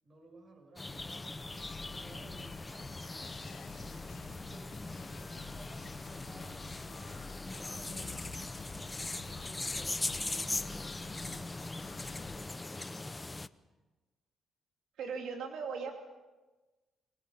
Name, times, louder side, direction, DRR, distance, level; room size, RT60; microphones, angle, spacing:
voice 1, 0.0-2.6 3.3-8.2 9.3-11.0 13.7-13.8, right 3 dB, 45° right, 3 dB, 7.7 m, -58 dB
sound 1, 0.8-13.5, left 2 dB, 20° left, 0.7 m, -40 dB
sound 2, 0.9-12.4, left 5 dB, 70° left, 2.8 m, -51 dB
voice 2, 15.0-15.9, right 5 dB, 75° right, 2 dB, 2.8 m, -38 dB
28.5 x 21.0 x 5.5 m, 1.2 s
cardioid pair, 90°, 0 cm